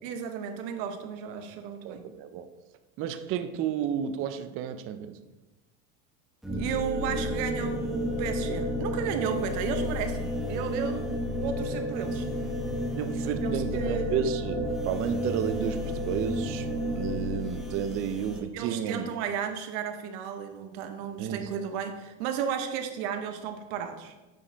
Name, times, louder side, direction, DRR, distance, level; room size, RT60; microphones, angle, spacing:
voice 1, 0.0-2.1 6.6-11.1 11.4-12.3 13.4-14.1 18.5-24.1, right 7 dB, 70° right, 7 dB, 1.0 m, -34 dB
voice 2, 1.8-2.5 3.0-5.2 13.0-16.7 17.0-19.1 21.2-21.5, right 9 dB, 35° right, 9 dB, 0.4 m, -32 dB
sound 1, 6.4-18.4, left 1 dB, ahead, 0.8 m, -31 dB
8.7 x 4.7 x 3.4 m, 1.1 s
supercardioid pair, 145°, 37 cm